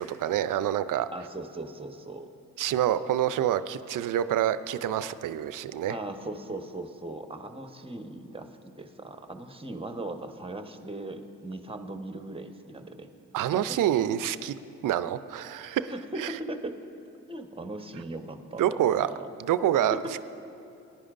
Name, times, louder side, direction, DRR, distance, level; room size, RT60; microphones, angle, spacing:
voice 1, 0.0-1.1 2.6-5.9 13.3-14.5 14.8-15.9 16.2-16.3 18.6-19.1 19.4-20.0, right 11 dB, 65° right, 14 dB, 0.5 m, -27 dB
voice 2, 1.1-2.3 5.9-13.1 13.5-14.1 15.9-16.8 17.3-19.3 19.9-20.2, right 2 dB, 15° right, 6 dB, 1.1 m, -39 dB
19.0 x 10.5 x 2.6 m, 2.7 s
supercardioid pair, 50°, 35 cm